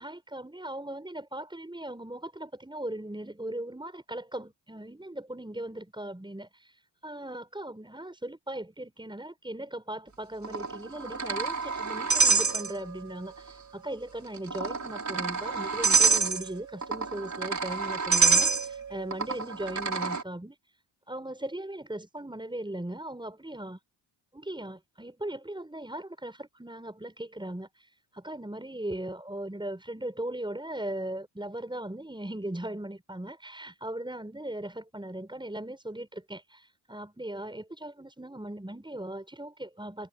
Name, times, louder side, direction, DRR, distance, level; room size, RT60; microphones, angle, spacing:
voice 1, 0.0-20.6 21.1-23.8 24.3-40.1, right 1 dB, 10° right, 7.1 m, -38 dB
sound 1, 10.4-13.1 13.4-13.5 14.4-20.2, right 4 dB, 35° right, 5.4 m, -27 dB
supercardioid pair, 60°, 46 cm